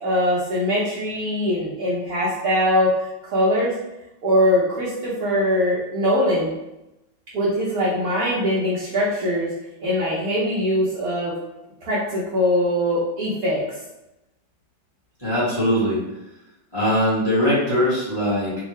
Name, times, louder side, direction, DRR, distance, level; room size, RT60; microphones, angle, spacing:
voice 1, 0.0-3.7 4.2-6.5 7.3-9.5 9.8-11.4 11.8-13.6, equal, 60° right, -7 dB, 1.1 m, -22 dB
voice 2, 15.2-16.0 16.7-18.6, equal, 15° left, -9 dB, 1.2 m, -21 dB
3.6 x 2.5 x 3.1 m, 0.94 s
omnidirectional pair, 2.0 m